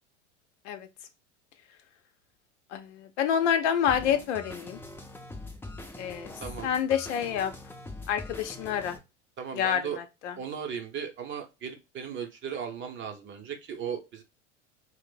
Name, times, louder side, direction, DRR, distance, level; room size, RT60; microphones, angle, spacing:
voice 1, 2.7-4.8 6.0-6.3 6.6-7.5 8.1-9.0 9.5-10.4, left 9 dB, 70° left, 0.6 m, -28 dB
sound 1, 3.9-9.0, left 2 dB, 5° left, 0.5 m, -43 dB
voice 2, 6.4-6.7 9.4-10.0 10.4-14.2, right 7 dB, 30° right, 0.7 m, -37 dB
2.5 x 2.0 x 3.7 m
hypercardioid pair, 85°, 36 cm